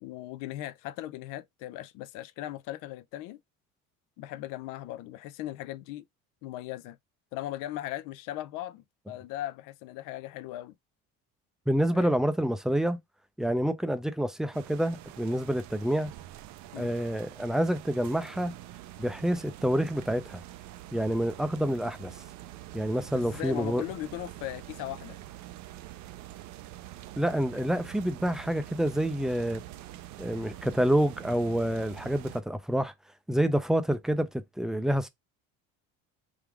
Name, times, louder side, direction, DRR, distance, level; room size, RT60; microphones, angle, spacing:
voice 1, 0.0-3.4 4.2-6.0 6.4-7.0 7.3-10.7 11.9-12.2 16.7-16.9 23.1-25.2, left 14 dB, 80° left, 0.5 m, -38 dB
voice 2, 11.7-13.0 13.4-16.1 16.8-18.5 19.0-20.4 20.9-22.2 22.7-23.8 27.2-29.6 30.2-32.9 33.3-35.1, equal, ahead, 0.4 m, -28 dB
sound 1, 14.5-32.4, right 14 dB, 60° right, 0.5 m, -45 dB
3.6 x 2.4 x 4.5 m
cardioid pair, 125°, 32 cm